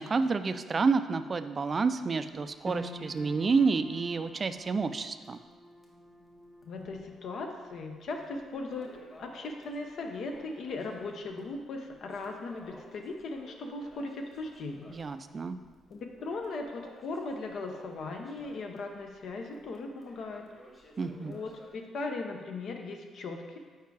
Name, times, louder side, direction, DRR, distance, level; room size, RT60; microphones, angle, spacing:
voice 1, 0.0-5.4 14.9-15.6 21.0-21.4, right 4 dB, 35° right, 11 dB, 0.3 m, -29 dB
Crackle, 2.4-5.0 5.2-5.3 5.8-5.9 6.6-7.2 7.6-21.9, left 1 dB, 30° left, 1.5 m, -55 dB
sound 1, 2.7-15.1 15.3-16.3 16.7-16.8, equal, 5° left, 0.6 m, -51 dB
voice 2, 6.6-8.9 9.2-15.0 15.9-20.5 21.1-23.6, left 3 dB, 65° left, 3 dB, 0.6 m, -38 dB
4.7 x 4.6 x 4.7 m, 1.4 s
cardioid pair, 90°, 0 cm